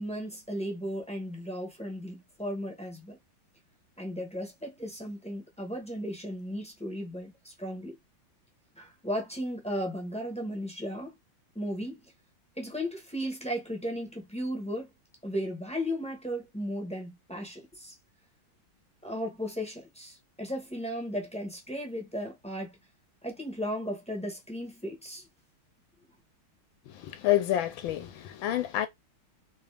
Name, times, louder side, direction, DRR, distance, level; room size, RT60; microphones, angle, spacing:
voice 1, 0.0-3.2 4.0-8.0 8.8-11.1 11.5-12.1 12.6-14.9 15.2-17.9 19.0-22.8 23.2-25.3, equal, 5° left, 0.7 m, -35 dB
voice 2, 26.9-28.9, left 13 dB, 75° left, 1.3 m, -28 dB
3.9 x 3.1 x 3.3 m
omnidirectional pair, 2.3 m